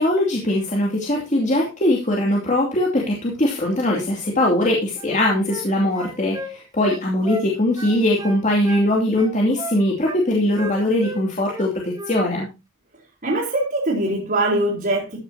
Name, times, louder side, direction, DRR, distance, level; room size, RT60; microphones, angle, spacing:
voice 1, 0.0-12.5, left 1 dB, 35° left, 2.7 m, -21 dB
sound 1, 5.0-5.7 5.9-7.5 7.8-8.9 9.2-10.2 10.6-11.7 11.9-12.2, right 2 dB, 20° right, 2.5 m, -34 dB
voice 2, 13.2-15.2, right 1 dB, 45° right, 4.0 m, -22 dB
14.5 x 9.6 x 2.8 m
head